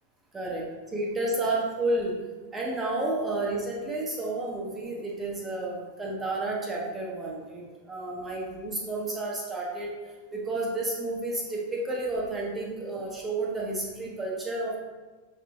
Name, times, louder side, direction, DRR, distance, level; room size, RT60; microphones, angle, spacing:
voice 1, 0.3-2.2 2.5-9.9 10.3-14.8, right 2 dB, 15° right, -3 dB, 0.8 m, -31 dB
5.7 x 2.3 x 3.0 m, 1.3 s
figure-of-eight pair, 90°, 0 cm